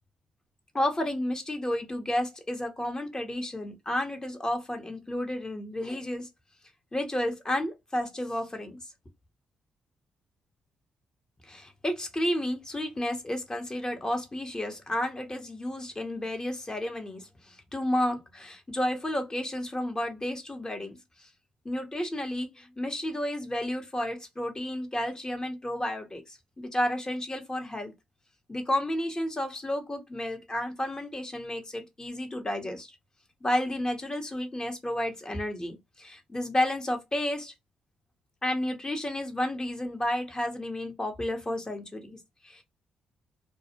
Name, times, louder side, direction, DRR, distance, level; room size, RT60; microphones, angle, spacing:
voice 1, 0.7-6.3 6.9-8.8 11.4-21.3 21.6-27.9 28.5-32.9 33.4-37.5 38.4-42.6, left 1 dB, 25° left, 1.0 m, -31 dB
2.3 x 2.1 x 2.9 m
hypercardioid pair, 45°, 3 cm